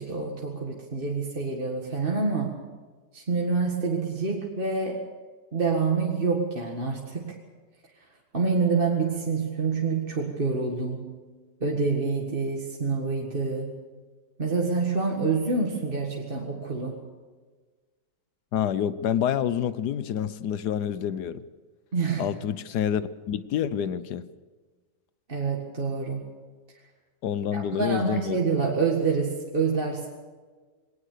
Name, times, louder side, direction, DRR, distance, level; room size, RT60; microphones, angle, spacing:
voice 1, 0.0-2.5 3.1-5.0 5.5-7.3 8.3-11.1 11.6-13.7 14.4-17.0 21.9-22.3 25.3-26.2 27.5-30.1, right 4 dB, 30° right, -1 dB, 2.0 m, -27 dB
voice 2, 18.5-21.4 22.2-24.2 27.2-28.4, left 9 dB, 70° left, 15 dB, 1.3 m, -28 dB
20.5 x 18.5 x 6.8 m, 1.4 s
omnidirectional pair, 1.9 m